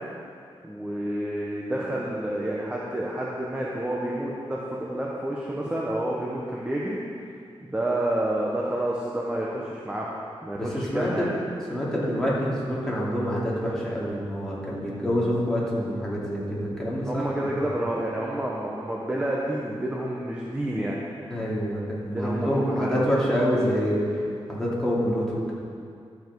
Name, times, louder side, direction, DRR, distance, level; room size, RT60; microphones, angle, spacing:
voice 1, 0.6-7.0 7.6-10.1 10.4-11.3 17.0-21.0 22.1-23.1, right 1 dB, 10° right, -4 dB, 1.0 m, -29 dB
voice 2, 10.9-11.3 11.7-17.5 21.3-24.0 24.5-25.5, equal, 5° left, -7 dB, 2.5 m, -26 dB
12.5 x 7.3 x 4.8 m, 2.3 s
wide cardioid pair, 125°, 10 cm